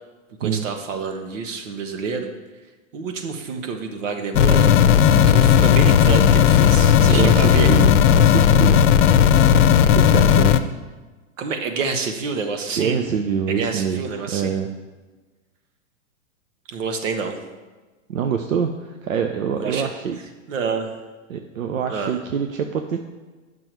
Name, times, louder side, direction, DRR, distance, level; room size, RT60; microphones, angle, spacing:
voice 1, 0.4-2.3 2.9-4.7 5.2-7.7 11.4-13.0 13.5-14.5 16.7-17.4 19.6-19.9 20.5-21.0 21.9-22.2, right 5 dB, 70° right, 5 dB, 1.4 m, -27 dB
sound 1, 4.3-10.6, left 9 dB, 65° left, 0.7 m, -14 dB
voice 2, 7.1-8.9 9.9-10.6 12.8-14.0 14.3-14.7 18.1-20.2 21.3-23.0, right 7 dB, 90° right, 6 dB, 0.7 m, -25 dB
9.1 x 6.1 x 4.6 m, 1.3 s
hypercardioid pair, 120°, 39 cm